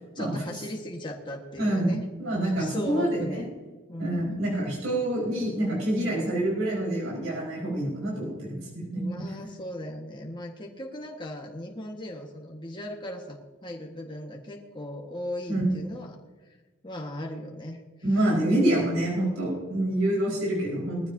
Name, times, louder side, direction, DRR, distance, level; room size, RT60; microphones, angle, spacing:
voice 1, 0.1-2.0 2.4-3.5 3.9-4.4 8.9-16.2 16.5-16.6 16.8-17.8, left 1 dB, 25° left, 0 dB, 1.6 m, -38 dB
voice 2, 1.6-3.4 4.0-9.0 15.5-15.6 18.0-21.1, right 1 dB, 80° right, -5 dB, 4.9 m, -27 dB
20.5 x 14.5 x 2.8 m, 1.3 s
head